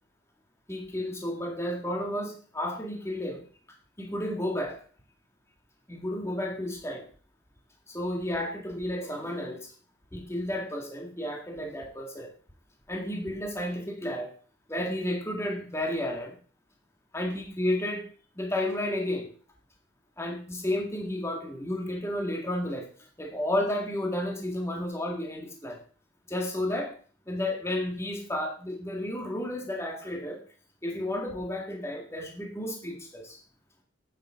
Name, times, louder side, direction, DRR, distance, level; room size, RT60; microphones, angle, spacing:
voice 1, 0.7-3.4 4.0-4.8 5.9-7.1 7.9-9.7 10.1-12.3 12.9-14.3 14.7-16.4 17.1-18.1 18.4-19.3 20.2-25.8 26.3-26.9 27.3-30.4 30.8-33.4, left 1 dB, 15° left, 1 dB, 1.9 m, -32 dB
9.0 x 8.4 x 5.2 m, 0.40 s
head